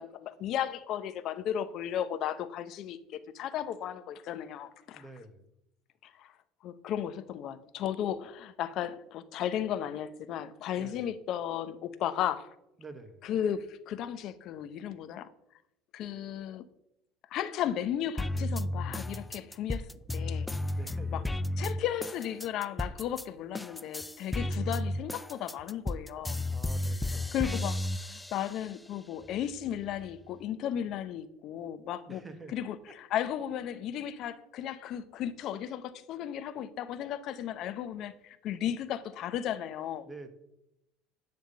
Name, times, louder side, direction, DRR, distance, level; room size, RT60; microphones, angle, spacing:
voice 1, 0.0-5.0 6.0-6.3 6.6-12.5 13.2-15.3 15.9-16.6 17.3-19.9 20.1-20.5 21.1-21.2 21.6-26.4 27.3-32.2 32.5-40.0, left 10 dB, 55° left, 0.8 m, -35 dB
voice 2, 4.9-5.5 10.8-11.1 12.8-13.2 20.7-21.4 26.5-27.3 32.1-32.6 32.9-33.0 40.0-40.3, right 2 dB, 15° right, 1.4 m, -48 dB
sound 1, 18.2-23.3 23.5-28.7 29.2-30.2, left 1 dB, 10° left, 0.4 m, -33 dB
10.5 x 3.6 x 7.1 m
supercardioid pair, 100°, 0 cm